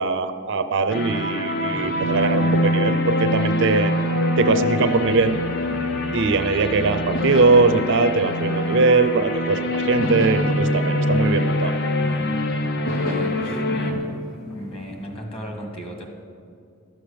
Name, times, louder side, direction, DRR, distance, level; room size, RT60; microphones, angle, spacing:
voice 1, 0.0-3.9 4.4-5.4 6.1-11.7, right 3 dB, 55° right, 10 dB, 0.5 m, -21 dB
sound 1, 0.9-13.9, left 1 dB, 50° left, 0.8 m, -24 dB
sound 2, 1.7-15.3, right 1 dB, ahead, 0.6 m, -40 dB
sound 3, 4.8-6.5 7.1-9.4 10.0-12.3 12.9-15.1, left 1 dB, 75° left, 0.9 m, -34 dB
voice 2, 12.0-12.4 12.9-14.0 14.5-16.0, equal, 25° left, 2 dB, 1.6 m, -35 dB
12.0 x 7.8 x 6.7 m, 2.5 s
head